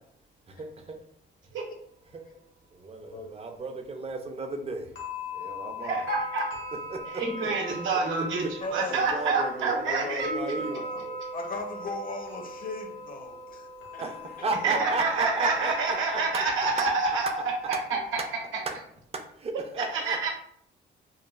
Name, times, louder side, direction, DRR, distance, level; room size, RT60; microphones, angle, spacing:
voice 1, 2.8-4.9 5.3-6.1 6.9-7.2 8.9-11.2 14.0-16.7 18.7-18.8 19.4-20.3, right 3 dB, 30° right, 5 dB, 0.4 m, -34 dB
sound 1, 5.0-18.4, equal, 70° left, 0.9 m, -40 dB
voice 2, 5.8-6.5 7.1-10.3 14.6-18.2 19.8-20.3, right 4 dB, 80° right, 1 dB, 0.7 m, -28 dB
voice 3, 8.6-11.0 11.3-15.5 15.9-16.3 16.6-16.7, left 3 dB, 45° left, 3 dB, 0.6 m, -38 dB
3.0 x 2.2 x 2.3 m, 0.68 s
cardioid pair, 90°, 20 cm